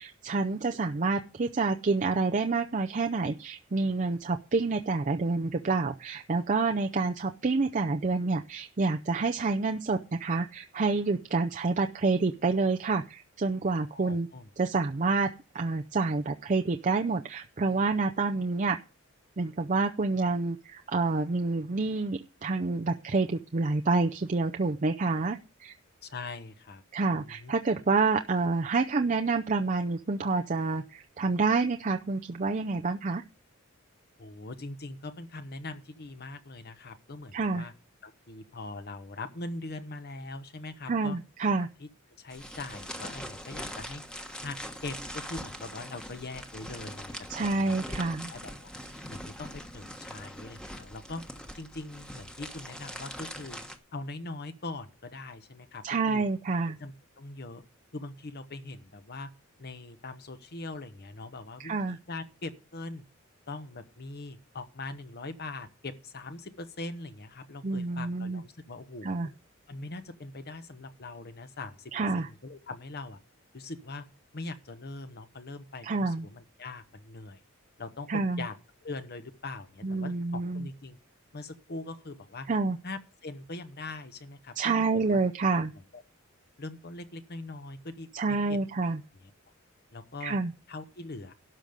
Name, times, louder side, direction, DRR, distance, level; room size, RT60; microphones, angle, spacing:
voice 1, 0.0-14.3 14.6-15.3 15.5-18.8 19.4-25.7 26.9-33.2 37.3-37.7 40.9-41.7 47.3-48.3 55.8-56.8 61.6-62.0 67.6-68.4 69.0-69.3 71.9-72.3 75.8-76.3 78.1-78.4 79.8-80.7 82.5-82.8 84.6-85.7 88.1-89.0 90.2-90.5, right 3 dB, 35° right, 5 dB, 0.5 m, -28 dB
voice 2, 13.9-14.5 26.0-26.8 27.1-27.5 34.2-37.7 38.0-41.2 41.8-41.9 42.2-44.0 44.4-44.6 44.8-47.8 48.3-48.7 49.1-51.2 51.5-53.6 53.9-56.2 56.7-57.6 57.9-59.3 59.6-63.0 63.5-69.3 69.7-73.2 73.5-74.0 74.3-77.4 77.8-78.5 78.8-81.0 81.3-82.5 82.8-85.2 85.9-86.0 86.6-88.6 89.2-89.3 89.9-90.4 90.7-91.3, left 2 dB, 50° left, 9 dB, 1.0 m, -41 dB
sound 1, 42.3-53.8, equal, 5° left, 1.2 m, -42 dB
12.5 x 5.2 x 7.9 m, 0.34 s
head